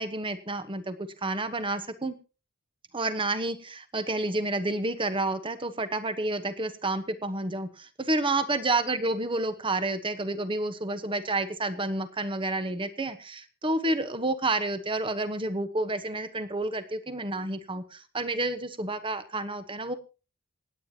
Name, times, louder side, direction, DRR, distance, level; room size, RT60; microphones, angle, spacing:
voice 1, 0.0-2.1 2.9-20.0, right 2 dB, 25° right, 11 dB, 1.1 m, -30 dB
27.0 x 9.3 x 2.9 m, 0.32 s
head